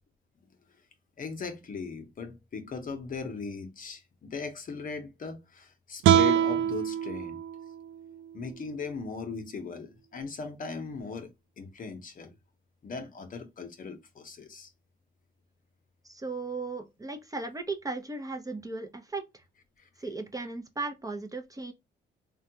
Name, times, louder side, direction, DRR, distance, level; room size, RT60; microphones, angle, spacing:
voice 1, 1.2-7.4 8.3-11.3 11.6-12.3 12.8-14.7, left 4 dB, 45° left, 0.8 m, -38 dB
sound 1, 6.0-9.2, right 10 dB, 80° right, 0.4 m, -26 dB
voice 2, 16.0-19.4 20.0-21.7, right 3 dB, 15° right, 0.6 m, -36 dB
3.4 x 2.2 x 2.7 m
cardioid pair, 90°, 20 cm